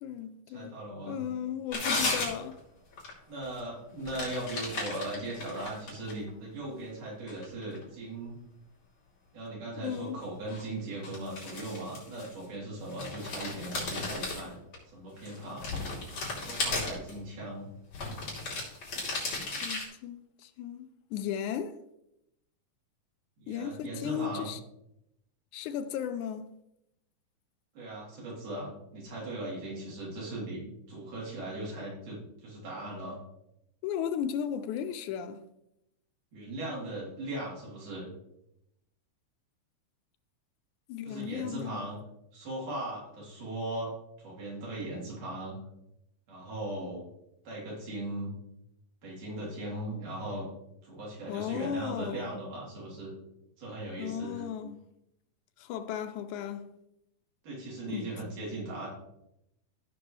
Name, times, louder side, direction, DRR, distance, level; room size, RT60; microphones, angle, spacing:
voice 1, 0.0-0.7 1.0-2.6 9.8-10.2 19.6-21.8 23.5-24.6 25.5-26.5 33.8-35.4 40.9-41.8 51.3-52.3 54.0-54.8 55.6-56.7 57.9-58.2, left 9 dB, 85° left, 2.0 m, -35 dB
voice 2, 0.5-1.2 3.3-8.3 9.3-14.6 14.9-15.7 16.4-17.7 23.4-24.5 27.7-30.6 30.9-33.2 36.3-38.1 41.0-42.0 42.3-43.9 44.2-45.6 46.3-47.0 47.4-48.3 49.0-50.5 50.8-53.1 53.6-54.4 57.4-58.9, right 1 dB, 85° right, 4.8 m, -38 dB
sound 1, 1.7-2.6 2.9-3.1 3.4-3.6 4.1-6.3 6.8-7.8 10.5-10.6 11.0-12.5 12.9-14.8 15.2-17.1 17.9-19.9, left 3 dB, 60° left, 4.0 m, -35 dB
15.0 x 6.0 x 3.2 m
omnidirectional pair, 3.5 m